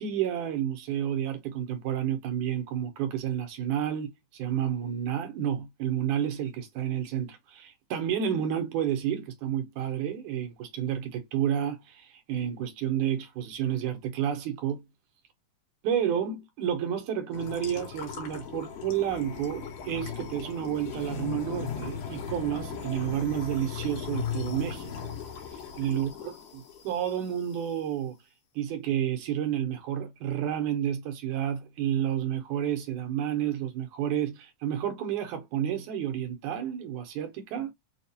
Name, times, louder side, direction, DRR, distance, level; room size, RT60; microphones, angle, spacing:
voice 1, 0.0-14.8 15.8-25.1 25.8-26.1 26.8-28.2 28.6-37.7, right 10 dB, 70° right, 2.0 m, -30 dB
sound 1, 17.3-27.8, left 7 dB, 90° left, 3.4 m, -38 dB
sound 2, 19.1-25.2, left 5 dB, 70° left, 1.6 m, -48 dB
6.5 x 2.3 x 2.7 m
omnidirectional pair, 4.0 m